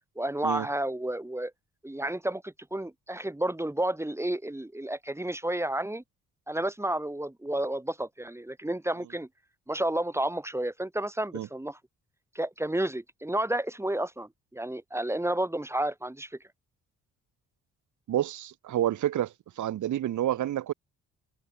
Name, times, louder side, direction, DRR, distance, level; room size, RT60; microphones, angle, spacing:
voice 1, 0.2-1.5 1.8-6.0 6.5-9.3 9.7-11.8 12.3-16.3, right 1 dB, 10° right, 4.5 m, -31 dB
voice 2, 18.1-20.7, right 12 dB, 75° right, 5.9 m, -29 dB
cardioid pair, 90°, 30 cm